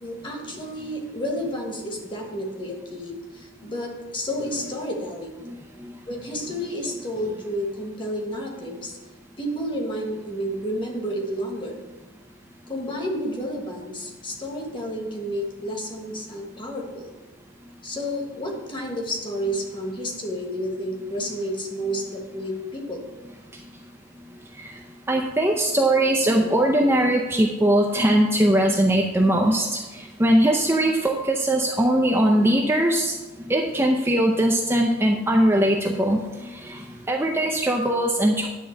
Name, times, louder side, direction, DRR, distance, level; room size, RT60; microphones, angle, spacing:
voice 1, 0.0-5.4 6.1-9.0 9.4-11.8 12.7-17.1 17.8-23.0, equal, 25° left, 1 dB, 1.3 m, -31 dB
voice 2, 25.1-29.8 30.2-33.1 33.5-36.2 36.6-36.8 37.1-38.5, right 1 dB, 10° right, 0 dB, 0.5 m, -20 dB
10.0 x 3.7 x 7.1 m, 1.2 s
head